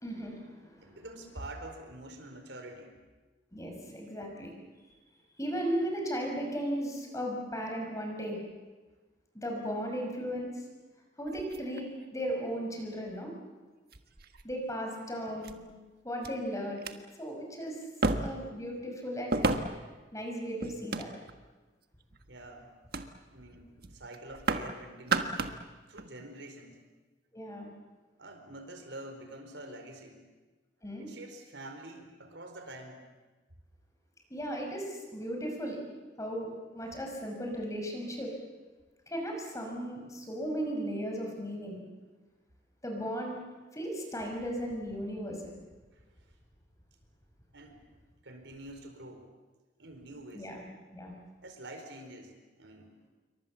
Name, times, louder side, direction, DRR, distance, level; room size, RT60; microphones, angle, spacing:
voice 1, 0.0-1.0 3.5-4.5 5.4-8.4 9.3-10.5 11.2-13.3 14.4-15.6 16.0-17.8 18.2-19.4 20.1-21.1 27.3-27.7 30.8-31.1 34.3-35.8 36.2-38.3 39.1-41.8 42.8-43.4 43.7-45.6 50.3-50.6 50.9-51.1, equal, 20° left, 1 dB, 5.7 m, -36 dB
voice 2, 0.8-2.9 14.7-15.0 22.3-22.7 23.3-25.4 25.9-26.8 28.2-30.2 31.0-33.0 45.9-46.0 47.5-47.8 48.2-49.3 49.8-50.5 51.4-52.9, right 1 dB, 85° right, 5 dB, 4.6 m, -46 dB
sound 1, 11.3-12.3 13.2-13.3 13.9-14.5 15.4-15.5 16.2-16.3 16.7-16.9 18.0-18.5 19.3-19.9 20.6-21.5 22.0-22.3 22.9-23.1 23.4-23.6 23.8-24.7 25.0-25.6 26.0-26.1, right 3 dB, 60° right, 1.5 m, -32 dB
28.0 x 24.0 x 7.4 m, 1.3 s
head